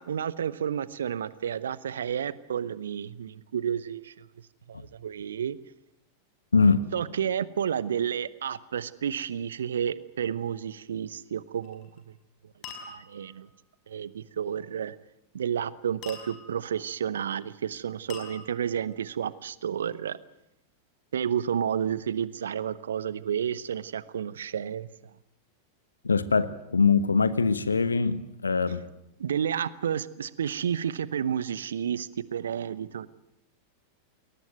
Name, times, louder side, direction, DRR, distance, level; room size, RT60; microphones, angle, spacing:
voice 1, 0.0-4.3 4.7-5.6 6.9-11.9 12.9-13.5 13.9-14.9 15.3-20.2 21.1-24.9 29.2-33.1, right 8 dB, 65° right, 19 dB, 0.9 m, -31 dB
voice 2, 6.5-6.8 26.0-28.8, left 4 dB, 75° left, 15 dB, 1.2 m, -23 dB
sound 1, 11.6-12.0 12.6-13.4 16.0-16.7 18.1-18.9, left 5 dB, 40° left, 5.7 m, -44 dB
21.5 x 19.0 x 9.3 m, 0.83 s
figure-of-eight pair, 90°, 0 cm